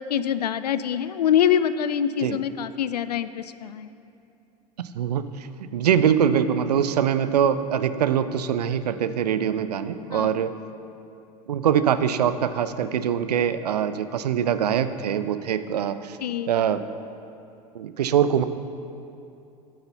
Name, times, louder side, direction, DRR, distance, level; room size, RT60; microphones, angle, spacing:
voice 1, 0.1-3.9 10.1-10.4 16.2-16.6, left 9 dB, 75° left, 14 dB, 0.4 m, -25 dB
voice 2, 4.9-5.5 5.7-10.5 11.5-16.2 16.5-16.8 17.7-18.4, right 8 dB, 75° right, 12 dB, 0.5 m, -23 dB
10.0 x 6.6 x 5.7 m, 2.7 s
figure-of-eight pair, 80°, 21 cm